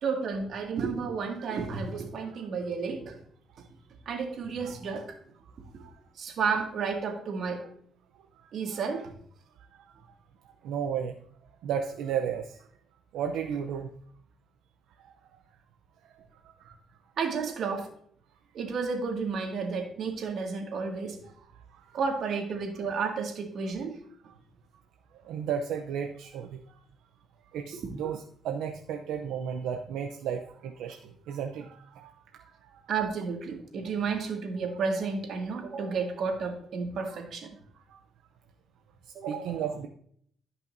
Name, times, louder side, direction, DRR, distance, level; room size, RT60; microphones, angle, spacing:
voice 1, 0.0-3.1 4.1-5.2 6.2-7.6 8.5-9.1 17.2-17.9 18.5-21.2 21.9-24.0 32.9-37.5 39.1-39.5, right 5 dB, 65° right, 2 dB, 2.0 m, -32 dB
voice 2, 8.7-9.1 9.7-9.8 10.6-11.2 11.6-12.6 13.1-13.9 16.7-16.8 25.2-26.6 27.5-32.1 32.4-32.9 35.7-35.8 37.9-38.0 39.2-39.9, right 8 dB, 90° right, 4 dB, 0.6 m, -34 dB
13.5 x 5.7 x 2.6 m, 0.63 s
cardioid pair, 90°, 0 cm